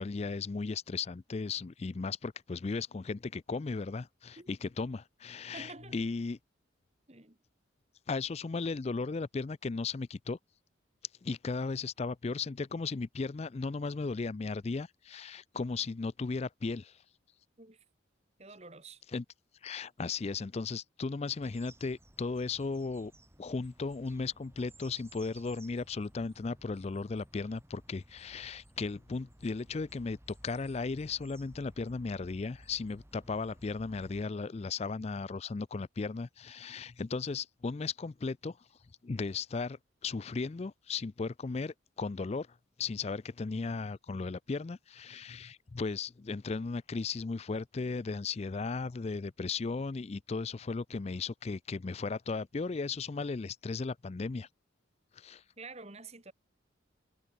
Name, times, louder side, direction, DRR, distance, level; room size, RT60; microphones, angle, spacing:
voice 1, 0.0-6.4 8.1-10.4 11.2-17.0 19.1-19.2 19.6-23.1 23.4-38.6 39.0-42.5 42.8-54.5 55.1-55.4, left 4 dB, 30° left, 0.4 m, -36 dB
voice 2, 5.5-6.0 7.1-7.4 17.6-17.8 18.4-19.0 55.6-56.3, right 3 dB, 30° right, 2.3 m, -48 dB
sound 1, 21.4-34.2, right 1 dB, 15° right, 3.2 m, -57 dB
head